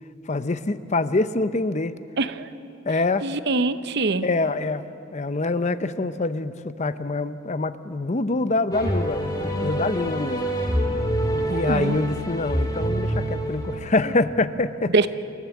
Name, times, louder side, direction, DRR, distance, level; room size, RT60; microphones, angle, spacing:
voice 1, 0.3-1.9 2.9-3.2 4.2-4.8 5.1-9.2 9.6-10.4 11.4-14.9, left 2 dB, 35° left, 12 dB, 0.6 m, -25 dB
voice 2, 3.2-4.3 11.5-12.0 14.9-15.1, right 3 dB, 55° right, 12 dB, 0.8 m, -23 dB
sound 1, 8.7-14.2, right 1 dB, 20° left, 2.0 m, -26 dB
27.5 x 15.0 x 7.3 m, 2.6 s
head